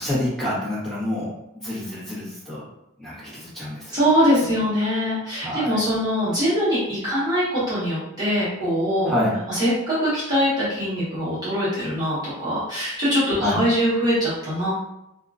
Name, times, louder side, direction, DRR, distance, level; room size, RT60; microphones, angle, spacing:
voice 1, 0.0-2.6 3.0-3.9 4.4-4.6 5.4-5.8 9.0-9.3 13.4-13.6, left 1 dB, ahead, -9 dB, 1.1 m, -27 dB
voice 2, 3.9-9.1 9.5-14.7, equal, 20° right, -12 dB, 1.2 m, -22 dB
2.7 x 2.5 x 2.3 m, 0.88 s
head